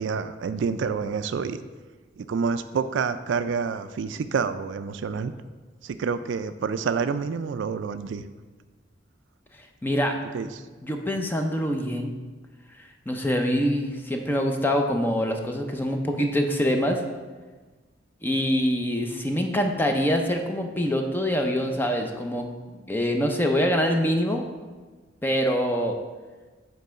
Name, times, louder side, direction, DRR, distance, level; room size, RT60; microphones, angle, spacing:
voice 1, 0.0-1.6 2.2-5.3 5.8-8.2 10.3-10.6, right 5 dB, 70° right, 11 dB, 0.3 m, -28 dB
voice 2, 9.8-10.2 10.8-12.1 12.8-17.0 18.2-22.5 22.9-24.4 25.2-26.0, equal, 10° left, 3 dB, 0.6 m, -25 dB
5.4 x 4.5 x 6.2 m, 1.3 s
head